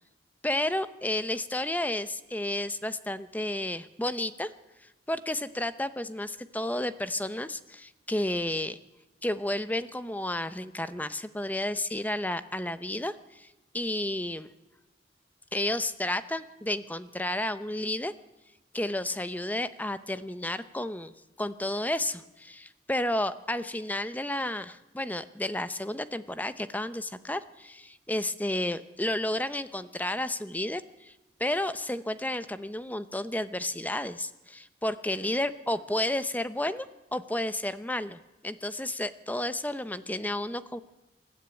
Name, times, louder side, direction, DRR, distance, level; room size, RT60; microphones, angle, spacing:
voice 1, 0.4-4.5 4.8-8.8 9.2-14.5 15.5-18.1 18.7-21.1 21.4-31.1 31.4-36.9 37.1-40.8, left 1 dB, 10° left, 13 dB, 0.7 m, -32 dB
26.5 x 12.5 x 9.1 m, 1.0 s
head